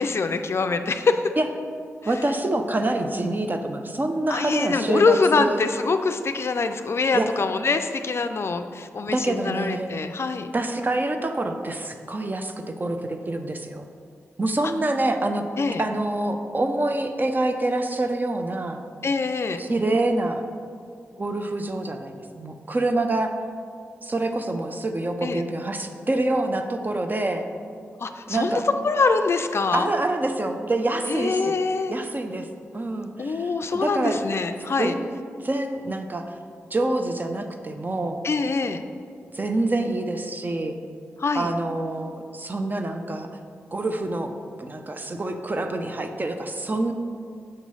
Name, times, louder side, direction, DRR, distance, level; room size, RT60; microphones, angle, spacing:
voice 1, 0.0-1.3 4.3-10.5 15.6-15.8 19.0-19.6 25.2-25.4 28.0-29.9 31.1-32.0 33.2-34.9 38.2-38.8 41.2-41.5, left 4 dB, 55° left, 8 dB, 0.4 m, -24 dB
voice 2, 2.1-5.7 7.1-7.3 9.1-9.9 10.5-13.8 14.4-15.4 15.8-18.8 19.6-20.4 21.2-23.3 24.0-27.5 28.3-28.6 29.7-31.6 31.9-32.5 32.7-34.2 34.8-36.3 36.7-38.2 39.3-40.8 41.3-43.3 43.7-44.3 44.6-46.9, right 2 dB, 35° right, 6 dB, 0.6 m, -26 dB
6.4 x 3.0 x 5.4 m, 2.2 s
supercardioid pair, 40°, 5 cm